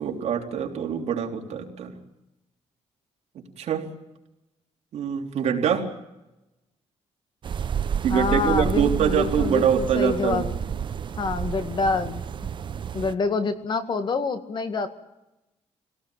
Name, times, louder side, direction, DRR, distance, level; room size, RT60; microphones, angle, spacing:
voice 1, 0.0-1.9 3.4-3.9 4.9-5.9 8.0-10.5, right 8 dB, 70° right, 1 dB, 3.7 m, -24 dB
sound 1, 7.4-13.1, right 7 dB, 45° right, 0.8 m, -30 dB
voice 2, 8.1-10.5 11.2-12.2 12.9-14.9, left 4 dB, 40° left, 9 dB, 2.0 m, -26 dB
25.0 x 18.0 x 9.0 m, 0.95 s
cardioid pair, 135°, 12 cm